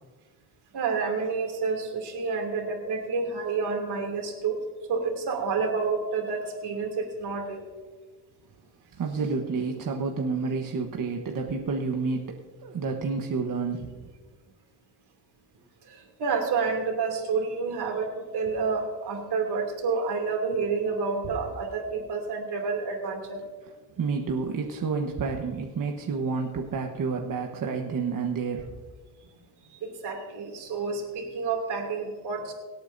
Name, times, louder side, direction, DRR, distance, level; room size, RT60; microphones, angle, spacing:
voice 1, 0.7-7.6 15.9-23.4 29.8-32.5, right 4 dB, 80° right, 2 dB, 2.8 m, -29 dB
voice 2, 9.0-14.0 24.0-28.7, right 4 dB, 55° right, 2 dB, 1.3 m, -29 dB
24.0 x 8.7 x 2.7 m, 1.4 s
cardioid pair, 80°, 39 cm